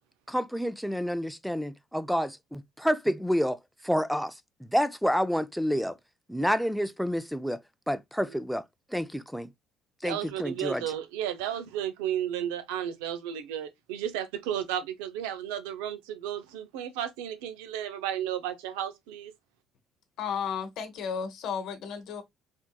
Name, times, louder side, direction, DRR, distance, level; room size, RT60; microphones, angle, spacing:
voice 1, 0.3-3.6 3.8-4.3 4.7-6.0 6.3-7.6 7.9-8.6 8.9-9.5 10.0-10.8, equal, ahead, 0.4 m, -28 dB
voice 2, 10.0-19.3, right 10 dB, 90° right, 0.5 m, -33 dB
voice 3, 20.2-22.2, left 7 dB, 70° left, 0.8 m, -33 dB
3.5 x 2.7 x 2.2 m
supercardioid pair, 75°, 0 cm